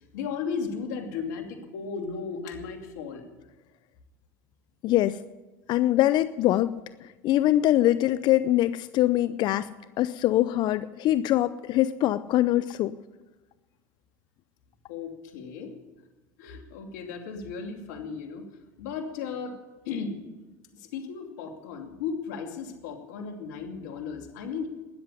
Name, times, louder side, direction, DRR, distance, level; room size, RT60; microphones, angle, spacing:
voice 1, 0.1-3.3 14.9-15.7 16.4-18.4 18.8-19.6 19.9-20.2 20.7-24.7, left 5 dB, 75° left, 4 dB, 2.7 m, -35 dB
voice 2, 5.7-6.7 7.2-9.7 10.0-12.9, left 14 dB, 50° left, 15 dB, 0.6 m, -23 dB
13.0 x 10.5 x 9.8 m, 1.2 s
hypercardioid pair, 95°, 9 cm